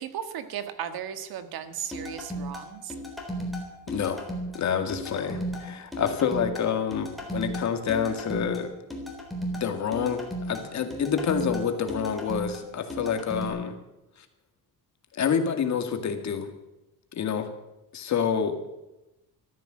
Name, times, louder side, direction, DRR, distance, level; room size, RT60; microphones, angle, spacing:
voice 1, 0.0-2.9, right 9 dB, 75° right, 10 dB, 1.6 m, -36 dB
sound 1, 1.9-13.5, equal, ahead, 3.6 m, -35 dB
voice 2, 3.9-4.3 4.5-8.7 9.6-13.7 15.1-16.5 17.1-17.5 17.9-18.6, left 7 dB, 50° left, 6 dB, 2.1 m, -28 dB
14.0 x 13.5 x 7.5 m, 0.95 s
cardioid pair, 155°, 37 cm